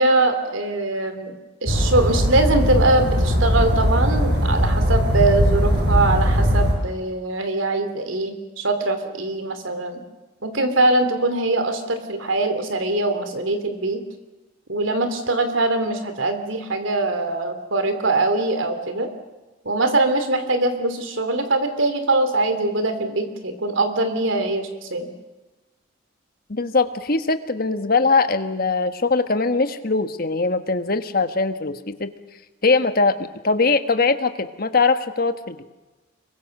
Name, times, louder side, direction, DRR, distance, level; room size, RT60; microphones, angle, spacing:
voice 1, 0.0-1.3 1.6-10.0 10.4-14.0 14.7-19.1 19.6-25.1, right 2 dB, 75° right, 8 dB, 3.0 m, -22 dB
sound 1, 1.7-6.7, equal, 55° right, 7.6 m, -19 dB
voice 2, 26.5-32.1 32.6-33.2 33.4-35.6, left 3 dB, 50° left, 9 dB, 1.4 m, -21 dB
26.0 x 23.0 x 6.6 m, 1.2 s
head